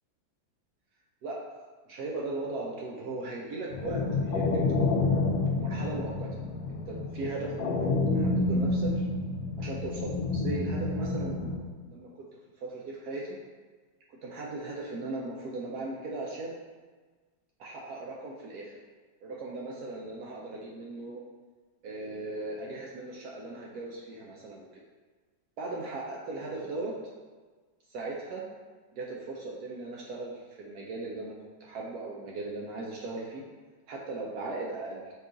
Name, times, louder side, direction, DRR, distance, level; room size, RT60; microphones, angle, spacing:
voice 1, 1.9-5.0 5.6-6.4 6.7-9.1 9.6-12.3 12.6-13.4 14.1-16.5 17.6-18.7 19.2-21.2 21.8-24.7 25.6-26.9 27.9-28.4 28.9-33.4 33.9-35.1, right 2 dB, 75° right, -3 dB, 0.9 m, -38 dB
sound 1, 3.7-11.6, left 3 dB, 80° left, 1.2 m, -29 dB
5.4 x 2.3 x 3.7 m, 1.4 s
omnidirectional pair, 2.1 m